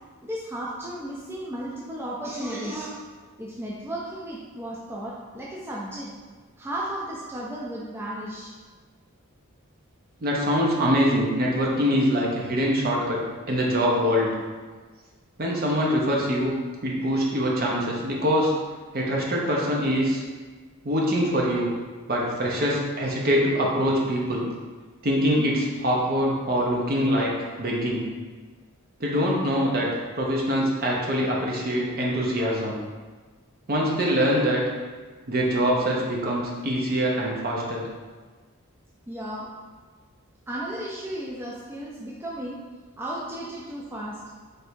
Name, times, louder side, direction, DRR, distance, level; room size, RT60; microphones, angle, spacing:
voice 1, 0.2-3.0 3.4-6.1 6.6-8.5 39.1-39.5 40.5-42.6 43.0-44.2, right 1 dB, 10° right, -5 dB, 0.3 m, -34 dB
voice 2, 10.2-13.2 13.5-14.3 15.4-16.5 16.8-18.5 18.9-20.2 20.8-21.7 22.1-24.5 25.0-28.0 29.0-29.9 30.2-32.8 33.7-34.6 35.3-37.8, equal, 45° right, -2 dB, 0.7 m, -24 dB
3.3 x 2.6 x 4.4 m, 1.4 s
head